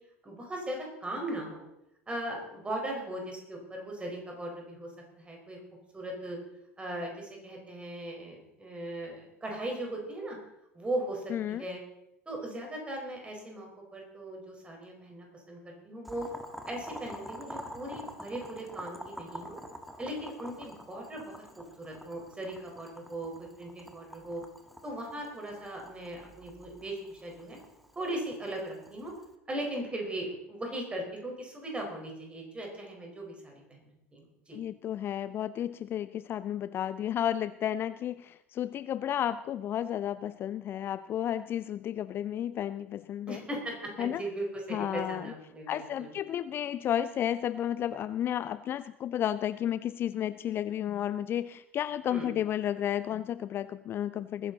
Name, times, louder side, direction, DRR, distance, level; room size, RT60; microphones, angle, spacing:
voice 1, 0.2-1.6 2.1-4.9 5.2-5.6 5.9-6.4 6.8-10.4 10.7-11.8 12.3-16.3 16.7-19.6 20.0-24.4 24.8-27.6 27.9-29.1 29.5-33.8 34.1-34.6 43.3-46.1 52.1-52.3, right 1 dB, 15° right, 1 dB, 4.7 m, -38 dB
voice 2, 11.3-11.7 34.5-43.4 44.0-44.2 44.7-45.3 45.7-54.5, left 10 dB, 35° left, 16 dB, 0.4 m, -32 dB
Boiling, 16.0-29.3, equal, ahead, 1.5 m, -47 dB
20.5 x 10.5 x 4.1 m, 0.85 s
figure-of-eight pair, 75°, 7 cm